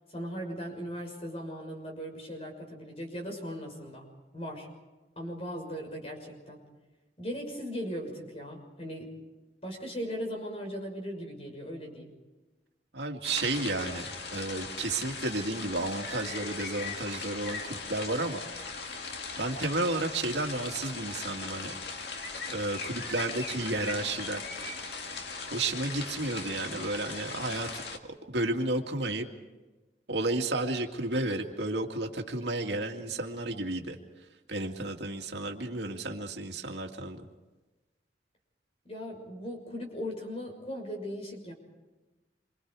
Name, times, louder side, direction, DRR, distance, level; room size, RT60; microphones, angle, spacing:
voice 1, 0.1-4.1 4.3-4.7 5.2-6.6 7.2-9.1 9.6-12.1 38.8-41.5, equal, 35° left, 2 dB, 6.2 m, -38 dB
voice 2, 12.9-18.4 19.4-21.8 22.5-24.4 25.5-27.8 28.3-29.3 30.1-34.0 34.5-37.3, right 2 dB, 80° right, 3 dB, 2.3 m, -32 dB
sound 1, 13.2-28.0, left 4 dB, 70° left, 2.0 m, -39 dB
27.5 x 25.5 x 4.8 m, 1.2 s
head